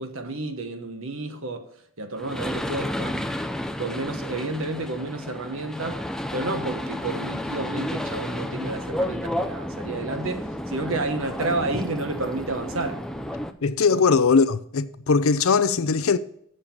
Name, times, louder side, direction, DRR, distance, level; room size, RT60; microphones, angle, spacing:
voice 1, 0.0-1.7 2.0-3.2 3.8-6.0 6.3-13.0 13.9-14.0, right 2 dB, 70° right, 1.2 m, -30 dB
sound 1, 2.2-13.5, left 1 dB, 5° left, 0.4 m, -31 dB
voice 2, 13.6-16.2, left 5 dB, 75° left, 0.6 m, -20 dB
7.5 x 6.7 x 7.1 m
head